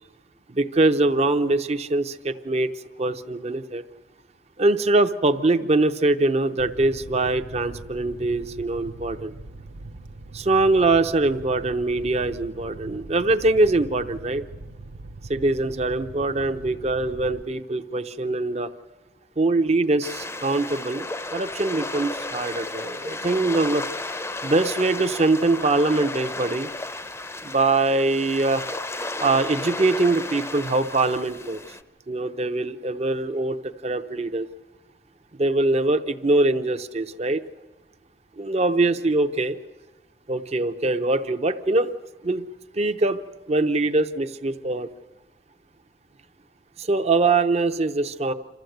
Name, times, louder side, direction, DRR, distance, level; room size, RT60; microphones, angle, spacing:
voice 1, 0.5-2.7 3.0-3.8 4.6-9.3 10.3-14.4 15.3-18.7 19.4-21.1 21.3-23.8 24.4-26.7 27.4-28.6 29.2-31.6 32.1-34.5 35.4-37.4 38.4-39.6 40.3-41.9 42.2-42.4 42.7-43.2 43.5-44.9 46.8-48.3, right 2 dB, 35° right, 8 dB, 0.7 m, -23 dB
Fire, 6.6-17.4, right 2 dB, 90° right, 0.7 m, -41 dB
sound 1, 20.0-31.8, left 2 dB, 15° left, 0.6 m, -33 dB
28.0 x 13.0 x 7.9 m, 1.3 s
head